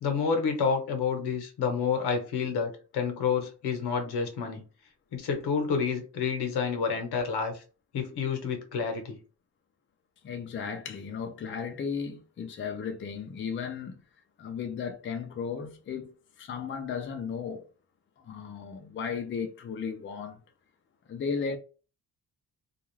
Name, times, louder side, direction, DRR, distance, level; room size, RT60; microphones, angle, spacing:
voice 1, 0.0-4.6 5.1-7.6 7.9-9.2, left 6 dB, 80° left, 1.0 m, -29 dB
voice 2, 10.2-14.0 14.4-17.6 18.2-20.4 21.1-21.6, left 6 dB, 30° left, 0.4 m, -35 dB
2.4 x 2.3 x 3.1 m
cardioid pair, 125°, 39 cm